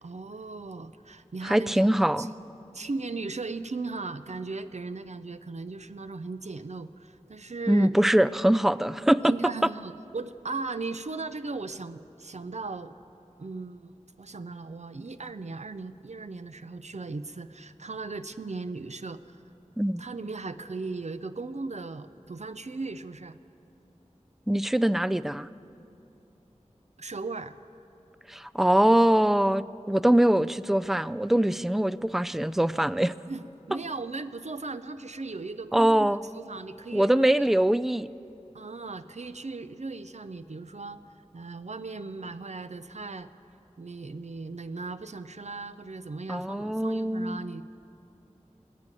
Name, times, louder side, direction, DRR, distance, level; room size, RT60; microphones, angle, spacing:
voice 1, 0.0-2.3 2.7-7.9 9.2-12.9 13.4-13.9 14.2-19.4 20.0-23.4 27.0-27.6 33.3-37.4 38.5-41.0 41.3-43.3 43.8-47.6, right 3 dB, 65° right, 11 dB, 0.5 m, -37 dB
voice 2, 1.4-2.3 7.7-9.3 19.8-20.0 24.5-25.5 28.3-33.1 35.7-36.2 36.9-38.1 46.3-47.4, right 1 dB, 5° right, 17 dB, 0.3 m, -23 dB
20.0 x 7.5 x 9.0 m, 2.8 s
wide cardioid pair, 40°, 13 cm